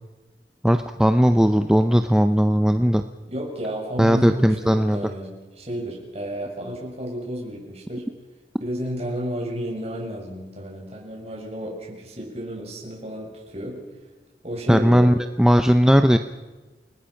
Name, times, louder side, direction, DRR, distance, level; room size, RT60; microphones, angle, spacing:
voice 1, 0.6-3.0 4.0-5.0 14.7-16.2, equal, 5° right, 7 dB, 0.6 m, -17 dB
voice 2, 3.3-5.3 5.6-8.0 8.6-13.8 14.4-15.1, equal, 35° right, -1 dB, 7.1 m, -32 dB
29.0 x 19.5 x 5.9 m, 1.2 s
head